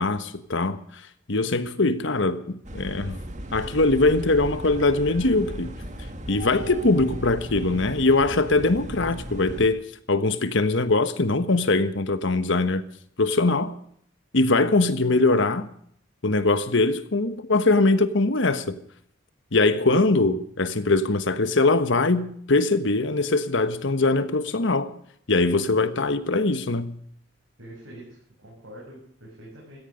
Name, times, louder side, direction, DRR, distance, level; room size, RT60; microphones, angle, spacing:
voice 1, 0.0-3.2 3.5-5.8 6.3-9.8 10.1-12.8 13.2-13.8 14.3-15.7 16.2-18.8 19.5-24.9 25.3-27.0, left 2 dB, 65° left, 1.3 m, -22 dB
sound 1, 2.6-9.7, equal, 40° right, 1.9 m, -36 dB
voice 2, 27.6-29.8, right 1 dB, 75° right, 7.6 m, -45 dB
16.5 x 15.0 x 5.2 m
head